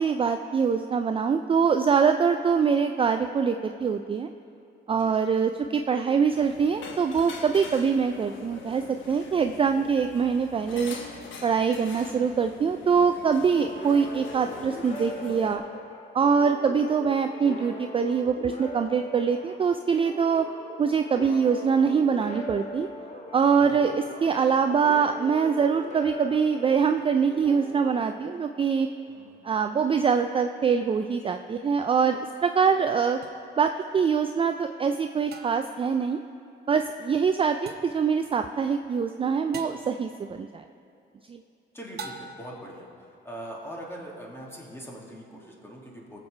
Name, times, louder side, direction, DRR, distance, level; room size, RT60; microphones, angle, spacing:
voice 1, 0.0-4.3 4.9-11.0 11.4-15.6 16.1-20.5 20.8-22.9 23.3-28.9 29.4-33.2 33.6-36.2 36.7-40.6 41.3-41.4, right 6 dB, 25° right, 7 dB, 0.4 m, -24 dB
sound 1, 6.3-15.6, left 4 dB, 75° left, 1.1 m, -43 dB
sound 2, 13.4-28.8, equal, 35° left, 1.4 m, -41 dB
voice 2, 29.0-29.4 41.7-46.2, right 1 dB, 10° left, -2 dB, 2.3 m, -42 dB
sound 3, 33.2-33.3 35.3-35.8 37.7-38.0 39.5-39.9 42.0-42.6, right 5 dB, 55° right, 0.8 m, -41 dB
18.5 x 7.4 x 3.3 m, 2.5 s
cardioid pair, 90°, 20 cm